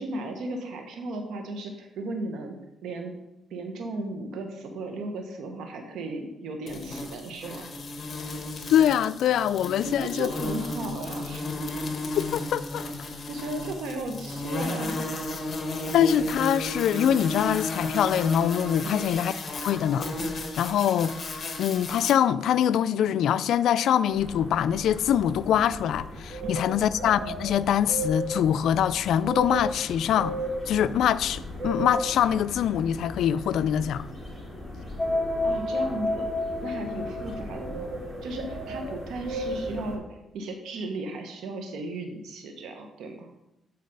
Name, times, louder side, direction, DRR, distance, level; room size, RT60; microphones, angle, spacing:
voice 1, 0.0-2.6 2.8-3.1 3.5-7.7 9.8-11.5 13.3-15.1 18.8-19.1 26.4-26.6 35.4-36.3 36.6-37.9 38.2-40.1 40.3-43.3, right 2 dB, 80° right, 1.0 m, -35 dB
sound 1, 6.7-22.1, left 2 dB, 35° left, 1.3 m, -34 dB
voice 2, 8.7-10.3 12.3-12.8 15.9-19.3 19.6-20.1 20.6-21.1 21.6-30.4 30.7-34.0, left 9 dB, 75° left, 0.3 m, -24 dB
sound 2, 24.1-40.0, right 1 dB, 15° right, 2.7 m, -36 dB
sound 3, 35.0-37.8, left 2 dB, 15° left, 1.6 m, -29 dB
8.7 x 4.0 x 5.4 m
cardioid pair, 90°, 0 cm